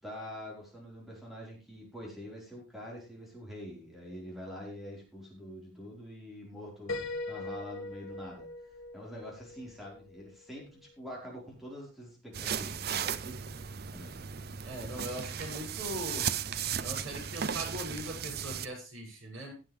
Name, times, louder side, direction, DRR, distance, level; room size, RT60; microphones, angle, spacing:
voice 1, 0.0-8.5 8.9-13.4 13.9-14.1, equal, ahead, -3 dB, 4.7 m, -45 dB
Piano, 6.9-10.6, left 3 dB, 85° left, 2.0 m, -41 dB
sound 1, 12.3-18.7, right 8 dB, 50° right, 0.6 m, -36 dB
voice 2, 14.6-16.3 16.8-19.5, equal, 85° right, -2 dB, 6.6 m, -40 dB
17.5 x 7.7 x 3.4 m, 0.32 s
head